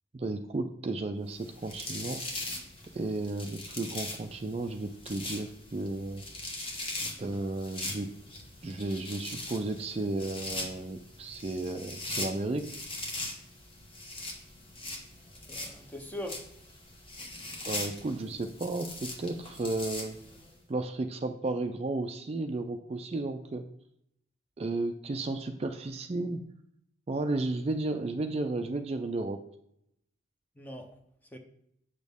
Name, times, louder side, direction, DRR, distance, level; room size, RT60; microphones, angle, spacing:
voice 1, 0.1-2.2 2.9-6.2 7.2-8.1 8.6-12.7 17.6-20.2 20.7-23.6 24.6-26.4 27.1-29.4, right 2 dB, 30° right, 0.4 m, -33 dB
sound 1, 1.3-20.5, left 2 dB, 30° left, 1.2 m, -41 dB
voice 2, 15.5-16.7 30.6-31.0 31.3-31.4, left 1 dB, 10° left, 0.7 m, -42 dB
7.9 x 6.2 x 3.6 m
head